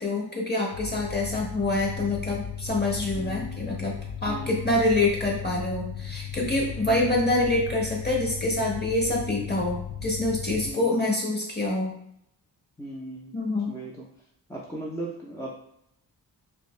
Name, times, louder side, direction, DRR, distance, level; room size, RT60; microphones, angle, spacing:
voice 1, 0.0-11.9 13.3-13.8, left 2 dB, 25° left, -2 dB, 1.1 m, -26 dB
sound 1, 0.7-10.7, left 8 dB, 70° left, 0.5 m, -36 dB
voice 2, 3.1-3.7 4.2-4.6 6.7-7.2 10.6-11.1 12.8-13.3 13.7-14.1 14.5-15.5, right 1 dB, 5° left, -4 dB, 0.5 m, -38 dB
3.4 x 2.7 x 3.1 m, 0.74 s
wide cardioid pair, 100°, 42 cm